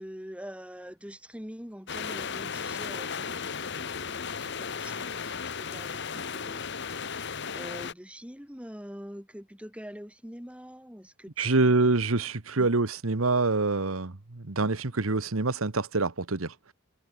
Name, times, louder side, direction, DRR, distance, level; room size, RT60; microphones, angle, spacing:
voice 1, 0.0-6.7 7.5-11.8 12.6-12.7, equal, 5° right, 3.8 m, -44 dB
sound 1, 1.9-7.9, left 6 dB, 55° left, 1.3 m, -35 dB
voice 2, 11.4-16.7, right 3 dB, 85° right, 1.3 m, -26 dB
head